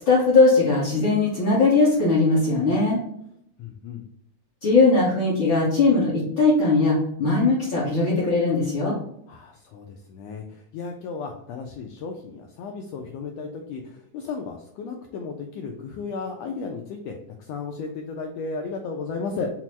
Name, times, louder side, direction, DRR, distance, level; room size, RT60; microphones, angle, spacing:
voice 1, 0.0-3.0 4.6-8.9, left 3 dB, 60° left, -7 dB, 1.3 m, -19 dB
voice 2, 3.6-4.0 9.3-19.5, left 4 dB, 90° left, 3 dB, 1.4 m, -34 dB
5.8 x 2.0 x 4.5 m, 0.75 s
omnidirectional pair, 3.5 m